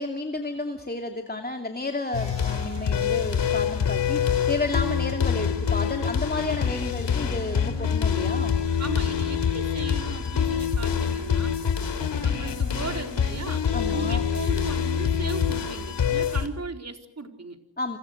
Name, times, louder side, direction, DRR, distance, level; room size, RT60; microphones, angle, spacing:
voice 1, 0.0-8.5 13.7-14.3 17.8-18.0, left 2 dB, 20° left, 3 dB, 2.7 m, -31 dB
sound 1, 2.1-16.5, left 7 dB, 90° left, 3.3 m, -25 dB
voice 2, 8.8-11.6 12.2-17.6, right 3 dB, 40° right, 5 dB, 4.2 m, -37 dB
29.0 x 25.0 x 6.6 m, 0.69 s
cardioid pair, 75°, 42 cm